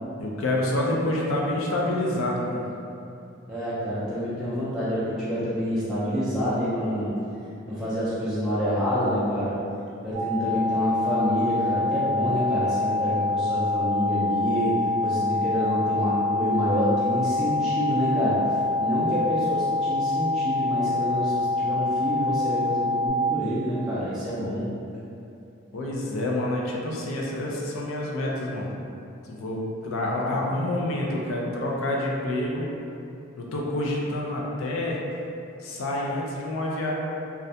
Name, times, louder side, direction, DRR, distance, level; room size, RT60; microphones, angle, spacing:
voice 1, 0.2-2.6 25.7-28.7 29.2-32.7 33.4-35.0 35.6-36.9, left 1 dB, 80° left, -3 dB, 0.4 m, -27 dB
voice 2, 3.5-7.1 7.7-9.6 10.0-14.8 15.0-24.7, equal, 5° right, -12 dB, 0.3 m, -27 dB
sound 1, 10.1-23.1, left 2 dB, 30° left, 1.1 m, -26 dB
2.4 x 2.1 x 2.7 m, 2.7 s
head